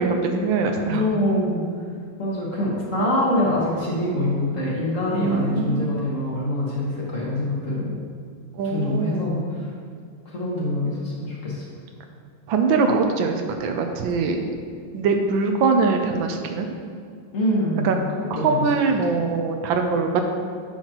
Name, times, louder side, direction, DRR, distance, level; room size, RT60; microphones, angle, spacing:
voice 1, 0.0-1.1 5.1-5.8 8.5-9.3 12.5-14.5 14.9-16.7 17.8-18.0 18.3-20.2, right 4 dB, 80° right, 4 dB, 1.4 m, -22 dB
voice 2, 0.9-1.6 2.2-7.9 8.6-9.7 10.2-11.6 17.3-18.7, left 1 dB, 45° left, -5 dB, 1.4 m, -25 dB
8.9 x 5.7 x 2.9 m, 2.1 s
omnidirectional pair, 2.2 m